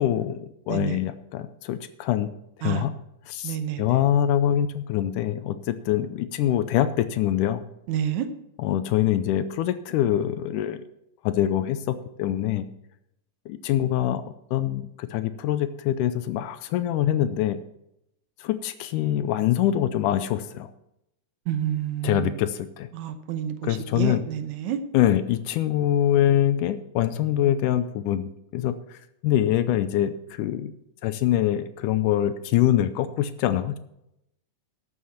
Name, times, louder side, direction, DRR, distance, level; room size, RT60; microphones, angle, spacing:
voice 1, 0.0-2.3 2.6-2.9 3.3-7.6 8.6-10.8 11.2-12.7 13.5-14.2 14.5-17.6 18.4-20.7 22.0-22.9 23.6-24.2 24.9-29.0 29.2-30.7 31.0-33.8, left 11 dB, 80° left, 12 dB, 2.0 m, -24 dB
voice 2, 0.7-1.0 2.6-2.9 3.4-4.0 7.9-8.3 21.5-22.3 22.9-24.8, right 10 dB, 75° right, 9 dB, 2.0 m, -29 dB
13.0 x 7.3 x 5.8 m, 0.82 s
omnidirectional pair, 3.9 m